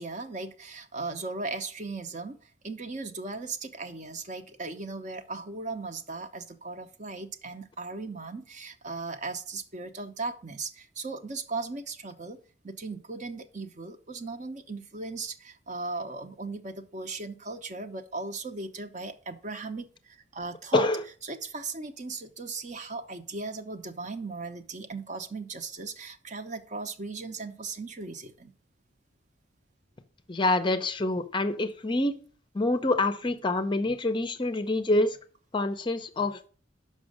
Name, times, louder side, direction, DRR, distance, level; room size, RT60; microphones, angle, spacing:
voice 1, 0.0-20.9 21.2-28.5, right 3 dB, 40° right, 0.8 m, -37 dB
voice 2, 30.3-32.2 32.5-35.2 35.5-36.5, left 2 dB, 25° left, 0.5 m, -26 dB
6.2 x 5.4 x 6.3 m
head